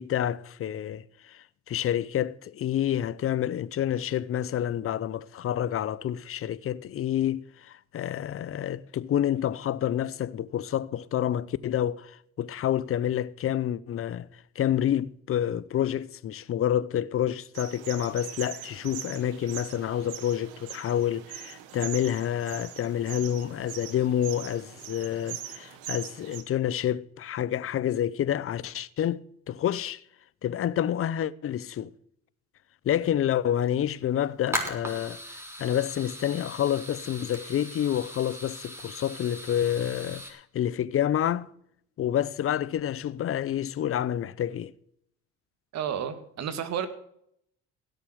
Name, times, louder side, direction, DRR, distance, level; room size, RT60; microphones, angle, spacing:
voice 1, 0.0-14.3 14.6-30.0 30.4-31.9 32.8-41.5 42.0-44.7, left 10 dB, 45° left, 0.8 m, -28 dB
sound 1, 17.5-26.4, right 11 dB, 85° right, 1.6 m, -41 dB
sound 2, 33.0-33.1 33.4-33.7 34.1-40.3, equal, 10° right, 3.8 m, -38 dB
voice 2, 45.7-46.9, right 8 dB, 60° right, 2.0 m, -31 dB
17.0 x 6.8 x 6.4 m
supercardioid pair, 80°, 30 cm